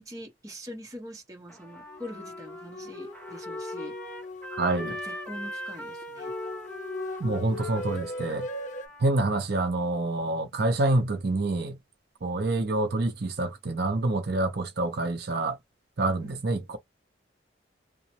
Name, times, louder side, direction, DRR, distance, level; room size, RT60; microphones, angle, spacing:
voice 1, 0.0-4.0 4.9-6.3 16.2-16.4, equal, 20° right, 1.1 m, -43 dB
Trumpet, 1.5-9.1, equal, 5° left, 1.0 m, -41 dB
sound 1, 1.9-8.9, left 2 dB, 40° left, 0.4 m, -38 dB
voice 2, 4.6-5.0 7.2-8.5 9.0-11.8 12.2-15.6 16.0-16.8, right 2 dB, 55° right, 0.6 m, -27 dB
3.0 x 2.0 x 2.8 m
head